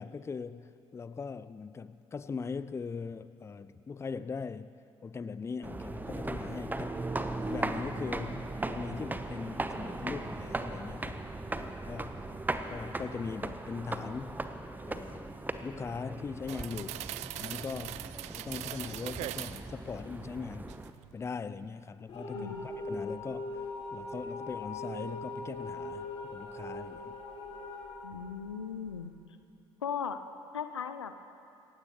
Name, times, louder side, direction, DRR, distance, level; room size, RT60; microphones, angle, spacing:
voice 1, 0.0-7.0 7.4-12.2 12.7-14.4 14.9-15.3 15.6-17.0 17.4-18.1 18.3-20.7 21.1-23.7 23.9-27.2 28.1-28.2, left 5 dB, 20° left, 15 dB, 0.5 m, -40 dB
sound 1, 5.6-20.9, right 2 dB, 10° right, 0.9 m, -38 dB
sound 2, 16.5-19.7 20.2-21.1 21.5-21.7, right 14 dB, 50° right, 0.5 m, -41 dB
sound 3, 22.1-29.0, left 2 dB, 45° left, 3.5 m, -40 dB
voice 2, 22.3-22.7 28.0-29.1 29.8-30.2 30.5-31.1, left 7 dB, 80° left, 10 dB, 0.6 m, -37 dB
27.5 x 15.5 x 3.0 m, 2.7 s
figure-of-eight pair, 55°, 14 cm